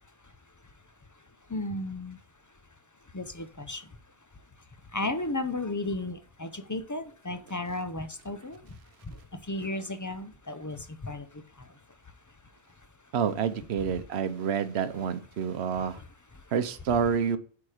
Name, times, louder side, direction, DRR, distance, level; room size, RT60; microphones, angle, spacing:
voice 1, 1.5-2.2 3.1-3.8 4.9-8.6 9.5-11.2, left 2 dB, 25° left, 10 dB, 0.4 m, -34 dB
voice 2, 13.1-16.0 16.5-17.4, right 7 dB, 65° right, 12 dB, 1.0 m, -28 dB
8.5 x 5.1 x 4.9 m, 0.44 s
omnidirectional pair, 1.2 m